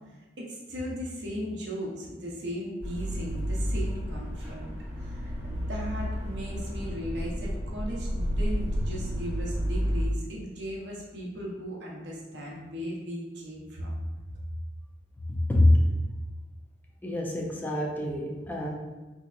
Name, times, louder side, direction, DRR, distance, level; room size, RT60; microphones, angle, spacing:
voice 1, 0.4-13.9, equal, 65° right, -3 dB, 0.7 m, -37 dB
sound 1, 2.8-10.1, equal, 10° right, 0.9 m, -31 dB
voice 2, 15.3-15.8 17.0-18.7, left 1 dB, 10° left, -1 dB, 0.4 m, -24 dB
4.1 x 2.7 x 2.4 m, 1.2 s
head